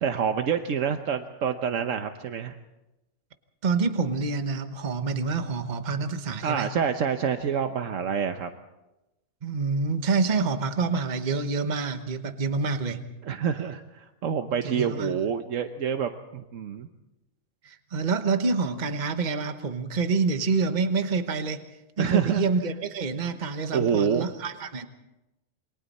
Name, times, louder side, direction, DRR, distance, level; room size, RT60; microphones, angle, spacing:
voice 1, 0.0-2.5 6.4-8.5 13.2-16.9 22.0-22.4 23.7-24.3, right 7 dB, 80° right, 7 dB, 1.3 m, -27 dB
voice 2, 3.6-6.7 9.4-13.0 14.6-15.2 17.6-21.6 22.0-24.9, right 4 dB, 40° right, 8 dB, 1.2 m, -27 dB
27.5 x 23.5 x 4.2 m, 0.97 s
omnidirectional pair, 1.3 m